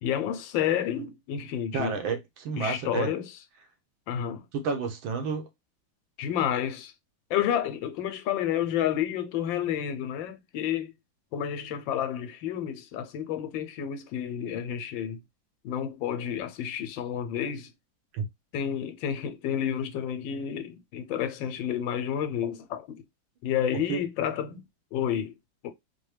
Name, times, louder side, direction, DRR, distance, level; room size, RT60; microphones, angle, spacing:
voice 1, 0.0-1.9 2.6-3.2 4.1-4.4 6.2-6.9 7.3-10.9 11.3-15.2 15.6-17.7 18.5-23.0 23.4-24.6 24.9-25.3 25.6-25.7, left 9 dB, 85° left, 1.3 m, -30 dB
voice 2, 1.7-3.1 4.5-5.5 18.1-18.3 23.9-24.0, right 5 dB, 85° right, 1.7 m, -30 dB
4.5 x 2.2 x 3.2 m
omnidirectional pair, 2.1 m